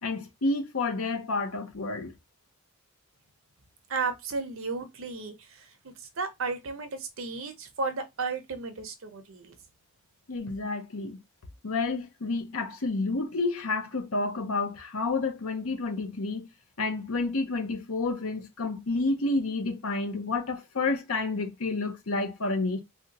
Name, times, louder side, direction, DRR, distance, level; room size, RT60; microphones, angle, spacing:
voice 1, 0.0-2.1 10.3-11.2 11.6-16.5 16.8-22.8, left 3 dB, 75° left, 0.8 m, -30 dB
voice 2, 3.9-5.6 6.2-9.5, right 4 dB, 65° right, 0.7 m, -33 dB
3.4 x 2.3 x 2.8 m
head